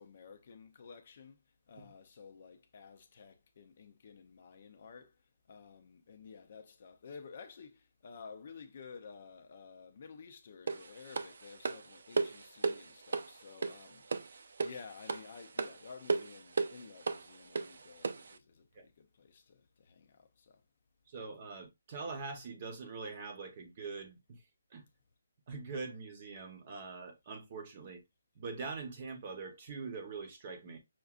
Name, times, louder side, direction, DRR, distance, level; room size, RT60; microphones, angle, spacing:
voice 1, 0.0-1.4 1.7-5.2 5.5-20.6, left 5 dB, 35° left, 0.5 m, -53 dB
sound 1, 10.7-18.4, right 4 dB, 55° right, 0.4 m, -36 dB
voice 2, 21.1-24.4 24.7-24.8 25.5-28.0 28.4-30.8, right 4 dB, 25° right, 0.9 m, -43 dB
5.8 x 2.5 x 2.4 m
hypercardioid pair, 175°, 0 cm